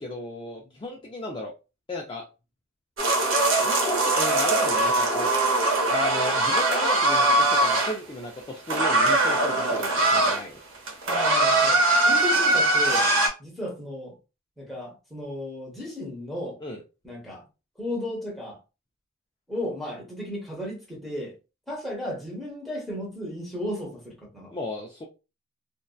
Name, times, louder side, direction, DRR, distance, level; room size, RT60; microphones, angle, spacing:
voice 1, 0.0-1.5 1.9-2.2 3.6-5.3 5.9-10.6 16.6-16.8 24.5-25.0, left 1 dB, 25° left, 0.3 m, -35 dB
sound 1, 3.0-7.9 8.7-10.4 10.7-13.3, right 2 dB, 65° right, 0.7 m, -21 dB
voice 2, 11.0-11.8 12.0-13.1 13.4-14.2 14.6-16.6 17.0-17.4 17.8-18.6 19.5-21.3 21.7-24.5, left 1 dB, ahead, 1.0 m, -34 dB
2.6 x 2.1 x 2.2 m
head